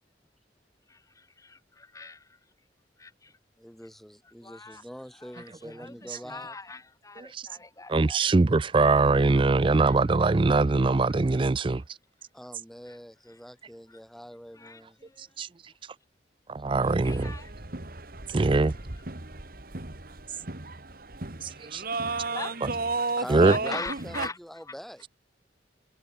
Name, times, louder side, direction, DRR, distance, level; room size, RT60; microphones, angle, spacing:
voice 1, 0.9-2.3 3.0-3.3 4.4-4.8 5.2-5.5 5.8-8.2 9.3-9.4 9.8-10.0 11.3-11.4 12.9-13.0 13.9-14.0 14.6-15.3 17.0-17.5 22.2-22.6 23.4-24.4 24.7-24.8, left 3 dB, 20° left, 1.2 m, -42 dB
voice 2, 3.6-6.6 12.3-15.0 23.2-25.0, equal, ahead, 2.1 m, -43 dB
voice 3, 7.9-11.8 15.4-15.5 16.5-17.3 18.3-18.7 21.4-21.8 22.6-22.7 23.3-23.6, right 3 dB, 30° right, 0.4 m, -22 dB
sound 1, 16.8-24.3, right 3 dB, 55° right, 2.1 m, -34 dB
head